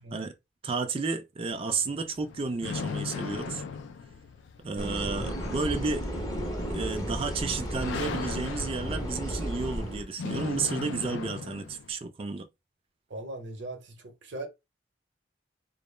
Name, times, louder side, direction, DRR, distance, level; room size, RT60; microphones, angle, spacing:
voice 1, 0.6-3.6 4.6-6.1 6.7-12.5, right 4 dB, 30° right, 0.3 m, -32 dB
sound 1, 1.5-11.9, left 5 dB, 65° left, 0.3 m, -39 dB
sound 2, 4.8-10.0, equal, 20° left, 0.6 m, -33 dB
voice 2, 13.1-14.5, right 2 dB, 65° right, 0.7 m, -39 dB
2.2 x 2.0 x 3.1 m
head